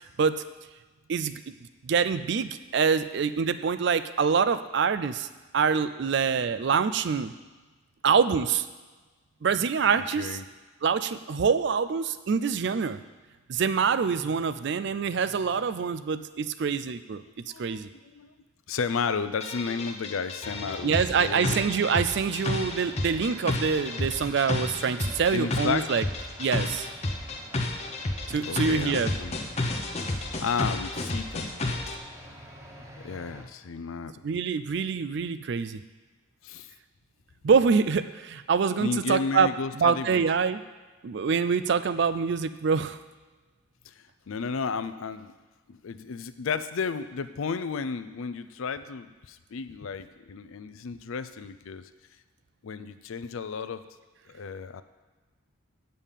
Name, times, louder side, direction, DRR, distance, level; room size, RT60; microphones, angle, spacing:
voice 1, 1.1-1.5 1.8-5.3 5.5-7.3 8.0-8.7 9.4-10.4 10.8-13.0 13.5-17.2 17.6-17.9 20.8-26.0 26.4-26.9 28.3-29.1 34.2-35.8 37.4-40.6 41.0-43.0, right 6 dB, 55° right, 13 dB, 0.4 m, -25 dB
voice 2, 10.0-10.4 17.5-18.3 18.7-21.7 25.3-25.9 28.4-29.4 30.1-31.5 32.8-34.2 36.4-36.7 38.8-40.2 43.9-44.0 44.3-45.3 45.7-51.9 52.6-53.8 54.3-54.8, left 5 dB, 75° left, 12 dB, 0.5 m, -33 dB
sound 1, 19.4-32.0, left 2 dB, 30° left, 0.7 m, -31 dB
sound 2, 20.4-33.4, equal, 15° right, 0.9 m, -47 dB
8.3 x 5.4 x 7.3 m, 1.3 s
head